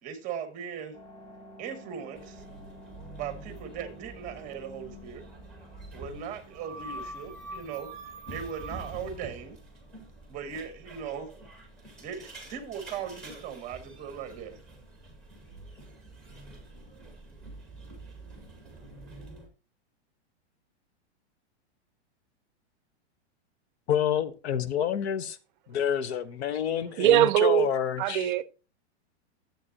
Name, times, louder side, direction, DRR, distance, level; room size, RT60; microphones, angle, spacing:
voice 1, 0.0-1.0 1.6-2.4 3.2-5.2 5.9-7.9 8.3-9.6 10.3-11.3 12.0-14.6, right 7 dB, 20° right, 1.1 m, -38 dB
sound 1, 0.9-15.9, equal, 80° left, 4.5 m, -55 dB
sound 2, 2.1-19.5, right 2 dB, ahead, 2.0 m, -46 dB
voice 2, 23.9-25.4 25.7-28.3, left 9 dB, 65° left, 1.0 m, -28 dB
voice 3, 27.0-27.7 28.0-28.4, right 13 dB, 45° right, 0.6 m, -21 dB
11.0 x 7.8 x 2.8 m
supercardioid pair, 160°, 35 cm